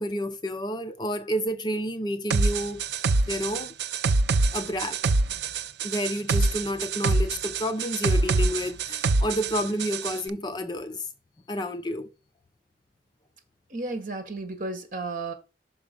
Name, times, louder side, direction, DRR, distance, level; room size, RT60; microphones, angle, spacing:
voice 1, 0.0-2.8 3.3-3.7 4.5-5.0 5.8-11.0 11.5-12.1, equal, 25° left, 0.5 m, -30 dB
sound 1, 2.3-10.2, right 3 dB, 75° right, 0.5 m, -25 dB
voice 2, 13.7-15.3, right 3 dB, 50° right, 1.6 m, -33 dB
5.9 x 4.7 x 5.3 m
head